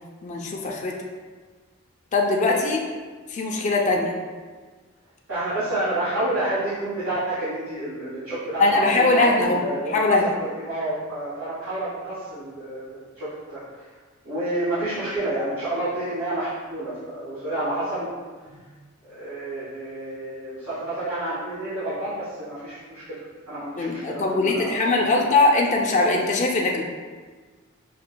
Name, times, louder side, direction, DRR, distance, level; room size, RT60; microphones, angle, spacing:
voice 1, 0.2-1.0 2.1-2.8 3.3-4.1 8.6-9.6 9.9-10.3 23.8-26.8, left 2 dB, 35° left, 0 dB, 0.4 m, -21 dB
voice 2, 5.3-13.9 14.2-18.1 19.0-25.1, right 1 dB, 85° right, -13 dB, 1.5 m, -29 dB
5.6 x 2.3 x 2.2 m, 1.4 s
head